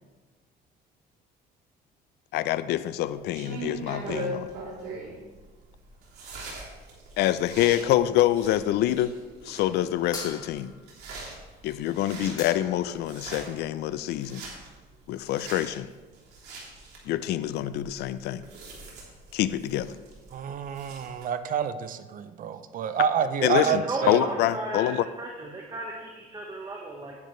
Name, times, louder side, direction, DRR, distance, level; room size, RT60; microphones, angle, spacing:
voice 1, 2.3-4.5 7.2-9.2 9.4-10.7 11.6-14.4 15.1-15.9 17.1-18.4 19.3-20.0 23.4-25.1, left 13 dB, 80° left, 14 dB, 0.5 m, -26 dB
sound 1, 3.0-21.2, right 3 dB, 75° right, 3.2 m, -42 dB
sound 2, 10.1-10.9 12.0-12.1 12.4-13.0, left 3 dB, 25° left, 2.0 m, -40 dB
voice 2, 20.3-24.2, right 7 dB, 55° right, 11 dB, 0.6 m, -28 dB
voice 3, 23.5-27.1, right 2 dB, 25° right, -1 dB, 1.4 m, -35 dB
10.5 x 10.0 x 3.2 m, 1.3 s
cardioid pair, 110°, 17 cm